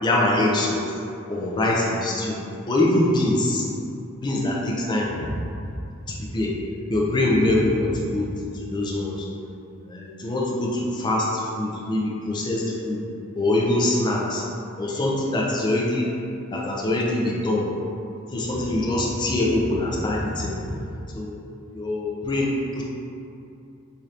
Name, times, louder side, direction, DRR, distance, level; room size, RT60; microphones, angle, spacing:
voice 1, 0.0-0.9 1.3-2.4 2.7-3.7 4.1-5.4 6.1-6.5 6.9-8.3 8.6-9.3 9.8-13.0 13.4-14.4 14.8-16.1 16.5-17.7 18.3-20.7 21.1-21.3 21.7-22.8, left 1 dB, 20° left, -3 dB, 0.4 m, -24 dB
3.2 x 2.7 x 2.5 m, 2.6 s
head